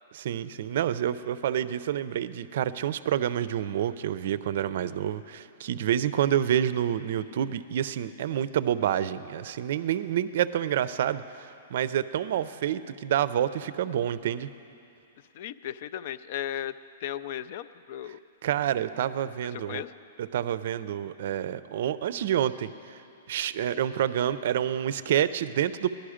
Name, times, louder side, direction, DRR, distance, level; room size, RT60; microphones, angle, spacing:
voice 1, 0.1-14.5 18.4-19.8 20.2-22.7 23.3-25.9, right 10 dB, 60° right, 15 dB, 0.4 m, -28 dB
voice 2, 15.4-16.7 17.0-18.2 19.7-19.9, left 11 dB, 50° left, 15 dB, 0.4 m, -35 dB
17.0 x 11.5 x 5.0 m, 2.6 s
hypercardioid pair, 155°, 0 cm